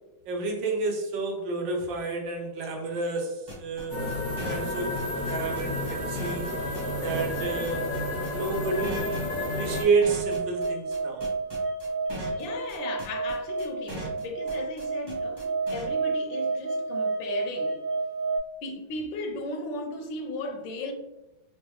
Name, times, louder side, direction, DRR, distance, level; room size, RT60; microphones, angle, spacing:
voice 1, 0.3-4.0 4.4-6.5 7.0-7.9 8.3-11.2, right 4 dB, 80° right, 1.3 m, -30 dB
sound 1, 3.5-15.9, right 1 dB, 20° right, 0.8 m, -40 dB
sound 2, 3.9-9.8, left 2 dB, 50° left, 0.5 m, -31 dB
sound 3, 5.0-18.4, right 3 dB, 65° left, 0.9 m, -32 dB
voice 2, 12.3-17.8 18.6-20.9, left 2 dB, 80° left, 1.3 m, -36 dB
3.7 x 2.2 x 2.8 m
omnidirectional pair, 2.0 m